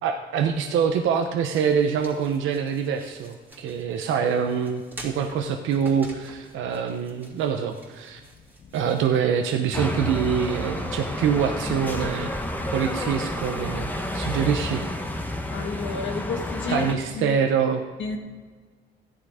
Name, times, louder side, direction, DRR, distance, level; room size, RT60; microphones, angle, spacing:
voice 1, 0.0-8.2 8.7-12.3 12.7-14.9 16.7-17.8, right 7 dB, 85° right, 5 dB, 0.9 m, -25 dB
sound 1, 0.9-9.8, right 1 dB, 10° right, 2.8 m, -48 dB
sound 2, 9.7-16.9, left 1 dB, 10° left, 1.3 m, -30 dB
voice 2, 15.5-16.9 17.1-17.4 18.0-18.2, left 5 dB, 65° left, 2 dB, 1.6 m, -31 dB
14.0 x 10.0 x 4.9 m, 1.5 s
cardioid pair, 90°, 20 cm